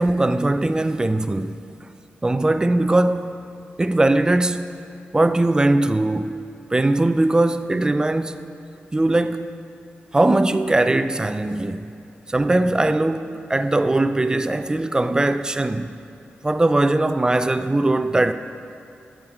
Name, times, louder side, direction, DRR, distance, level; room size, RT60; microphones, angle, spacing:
voice 1, 0.0-1.6 2.2-3.4 3.8-4.8 5.1-6.4 6.7-8.4 8.9-9.5 10.1-11.8 12.3-15.9 16.4-18.3, right 2 dB, 20° right, 0.4 m, -20 dB
9.4 x 7.3 x 4.6 m
wide cardioid pair, 90°, 4 cm